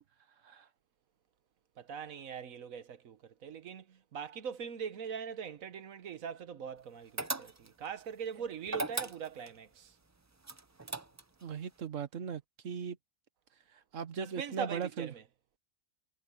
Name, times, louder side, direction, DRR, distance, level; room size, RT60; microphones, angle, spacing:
voice 1, 1.8-9.9 14.2-15.2, right 7 dB, 90° right, 1.5 m, -42 dB
sound 1, 7.2-7.9 8.7-9.6 10.4-11.4, right 2 dB, 20° right, 0.5 m, -37 dB
voice 2, 11.4-13.0 13.9-15.1, right 7 dB, 70° right, 1.5 m, -38 dB
omnidirectional pair, 1.4 m